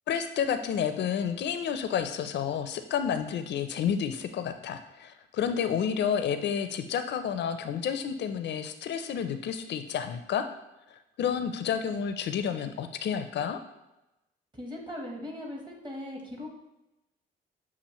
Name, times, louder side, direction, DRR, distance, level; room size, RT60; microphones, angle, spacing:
voice 1, 0.1-10.5 10.9-13.6, left 8 dB, 60° left, 8 dB, 0.5 m, -30 dB
voice 2, 14.5-16.5, left 1 dB, 25° right, 0 dB, 1.2 m, -39 dB
6.9 x 2.4 x 3.0 m, 0.94 s
cardioid pair, 90°, 20 cm